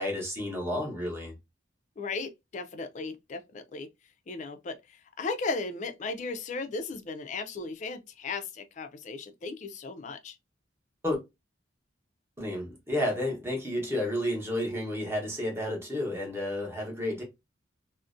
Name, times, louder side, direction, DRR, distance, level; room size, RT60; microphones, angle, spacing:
voice 1, 0.0-1.3 11.0-11.2 12.4-17.2, left 1 dB, 15° right, 0.8 m, -31 dB
voice 2, 2.0-3.9 4.3-10.4, left 3 dB, 40° left, 0.3 m, -36 dB
2.5 x 2.1 x 2.4 m
head